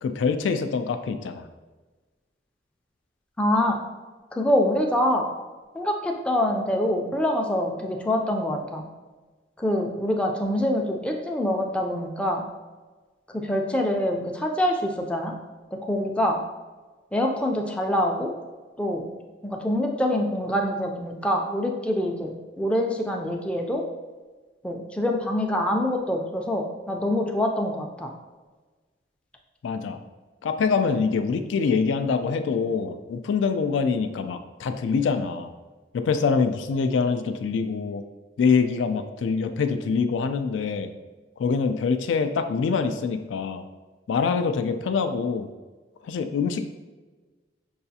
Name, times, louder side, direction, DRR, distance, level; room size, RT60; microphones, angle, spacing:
voice 1, 0.0-1.5 29.6-30.0 30.4-35.5 35.9-38.0 38.4-40.9 41.4-43.6 44.1-45.5 46.0-46.7, left 5 dB, 90° left, 9 dB, 0.3 m, -25 dB
voice 2, 3.4-3.8 4.3-5.3 5.7-8.8 9.6-12.5 13.3-15.3 15.7-16.4 17.1-18.3 18.8-19.1 19.4-23.8 24.6-28.1, left 1 dB, 5° left, 1 dB, 0.3 m, -25 dB
5.5 x 2.4 x 2.7 m, 1.3 s
head